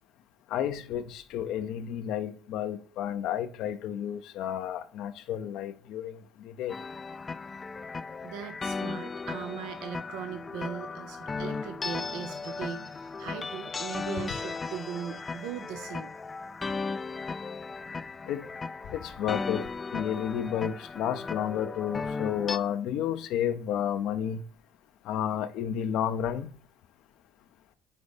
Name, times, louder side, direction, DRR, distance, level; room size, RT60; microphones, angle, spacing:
voice 1, 0.5-6.7 18.3-18.5 18.9-24.4 25.0-26.5, left 9 dB, 70° left, 0.6 m, -31 dB
sound 1, 6.7-22.6, left 4 dB, 25° left, 0.4 m, -36 dB
voice 2, 8.2-16.1, right 8 dB, 75° right, 0.6 m, -39 dB
5.3 x 3.9 x 5.3 m
supercardioid pair, 80°, 0 cm